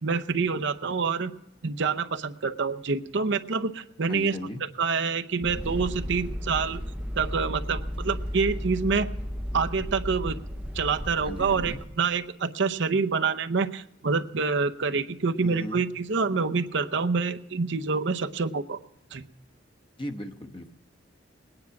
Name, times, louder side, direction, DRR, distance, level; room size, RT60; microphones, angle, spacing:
voice 1, 0.0-1.3 1.6-4.3 4.8-6.8 7.2-9.1 9.5-10.4 10.7-18.8 19.1-19.2, right 4 dB, 65° right, 7 dB, 0.7 m, -27 dB
voice 2, 4.1-4.6 11.2-11.8 15.4-15.8 20.0-20.7, left 1 dB, 25° left, 4 dB, 1.1 m, -36 dB
sound 1, 5.4-11.9, equal, 5° right, 0.7 m, -34 dB
20.0 x 9.8 x 5.9 m, 0.90 s
head